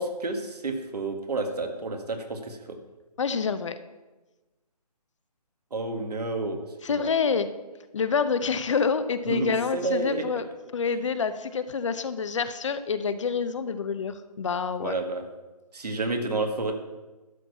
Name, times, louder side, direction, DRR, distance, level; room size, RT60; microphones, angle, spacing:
voice 1, 0.0-2.8 5.7-6.6 6.9-7.1 9.3-10.2 14.8-15.2 15.7-16.7, right 2 dB, 75° right, 5 dB, 1.8 m, -30 dB
voice 2, 3.2-3.8 6.8-7.5 7.9-10.5 10.7-14.9, left 5 dB, 50° left, 12 dB, 0.7 m, -27 dB
12.0 x 4.6 x 8.3 m, 1.2 s
figure-of-eight pair, 155°, 20 cm